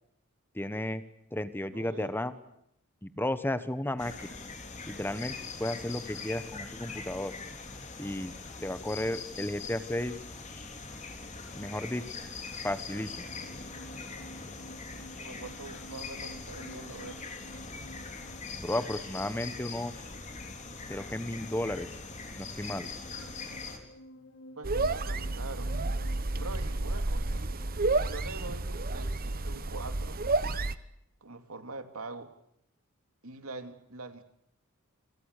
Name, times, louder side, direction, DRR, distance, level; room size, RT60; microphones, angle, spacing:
voice 1, 0.5-1.0 1.3-2.3 3.0-4.4 4.9-7.3 8.0-8.3 8.6-10.2 11.5-12.0 12.6-13.3 18.6-19.9 20.9-21.9 22.4-22.9, left 1 dB, 10° left, 12 dB, 1.3 m, -33 dB
voice 2, 1.7-2.1 15.2-17.2 24.6-25.7 26.4-27.4 27.8-30.2 31.2-32.3 33.2-34.2, right 3 dB, 85° right, 8 dB, 2.6 m, -44 dB
sound 1, 4.0-23.8, left 4 dB, 35° left, 3.8 m, -42 dB
sound 2, 12.3-30.8, equal, 70° left, 3.7 m, -53 dB
sound 3, 24.6-30.7, right 2 dB, 45° right, 1.1 m, -31 dB
28.5 x 27.0 x 6.8 m, 0.75 s
head